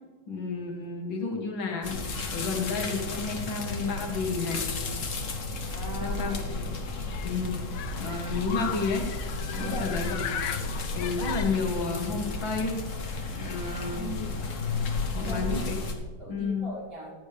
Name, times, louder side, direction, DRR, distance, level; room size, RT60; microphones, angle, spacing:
voice 1, 0.3-2.0 2.3-4.6 6.0-6.4 7.2-7.6 8.0-9.1 9.5-10.2 10.9-12.8 13.4-14.1 15.1-15.8 16.3-16.7, left 4 dB, 65° left, 2 dB, 2.2 m, -31 dB
sound 1, 1.8-15.9, left 3 dB, 45° left, 1.3 m, -33 dB
voice 2, 5.7-6.6 9.6-10.1 13.8-14.6 15.2-15.9 16.2-17.1, equal, 50° right, -6 dB, 5.0 m, -39 dB
Human group actions, 7.1-12.1, left 9 dB, 90° left, 0.7 m, -38 dB
14.5 x 11.5 x 3.4 m, 1.4 s
omnidirectional pair, 2.3 m